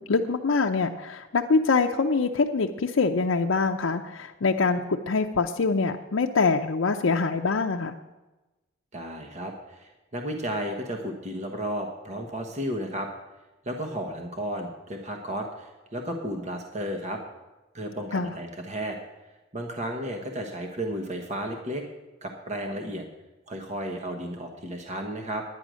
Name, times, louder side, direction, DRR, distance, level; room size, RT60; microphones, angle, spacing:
voice 1, 0.1-8.0 18.1-18.3, left 4 dB, 85° left, 3 dB, 0.6 m, -24 dB
voice 2, 8.9-13.1 13.6-17.2 17.7-19.0 19.5-21.8 22.2-23.0 23.5-25.4, right 1 dB, 35° right, 3 dB, 1.2 m, -33 dB
10.5 x 9.7 x 6.2 m, 1.1 s
head